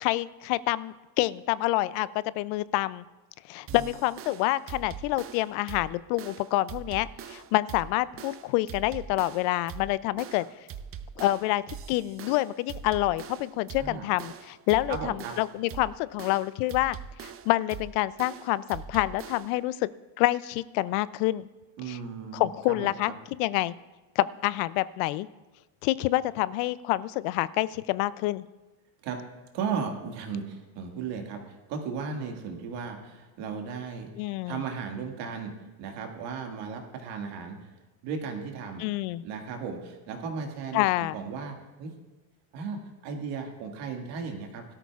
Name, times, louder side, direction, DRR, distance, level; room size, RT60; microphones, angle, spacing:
voice 1, 0.0-3.0 3.5-10.4 11.2-19.9 20.2-21.5 21.9-22.0 22.3-23.7 24.2-25.3 25.8-28.5 34.1-34.6 38.8-39.2 40.7-41.2, left 17 dB, 70° left, 18 dB, 0.5 m, -27 dB
sound 1, 3.7-19.6, right 7 dB, 30° right, 0.5 m, -43 dB
voice 2, 14.9-15.3 21.8-22.9 29.0-29.2 29.5-34.1 34.5-35.5 35.8-37.6 38.0-38.8 39.2-40.9 41.1-41.9 42.5-44.6, right 5 dB, 65° right, 3 dB, 2.0 m, -35 dB
17.5 x 12.5 x 2.4 m, 1.2 s
supercardioid pair, 125°, 47 cm